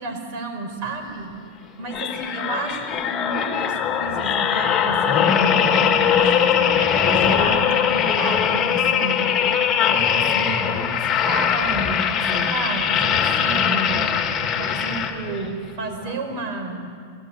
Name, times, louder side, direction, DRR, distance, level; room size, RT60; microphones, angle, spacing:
voice 1, 0.0-1.3 1.8-5.7 6.2-9.4 9.9-11.9 12.3-14.0 14.6-16.9, right 3 dB, 50° right, 5 dB, 5.2 m, -31 dB
sound 1, 1.9-15.5 16.0-16.2, left 8 dB, 25° left, 2.6 m, -21 dB
27.5 x 19.0 x 10.0 m, 2.2 s
hypercardioid pair, 130°, 0 cm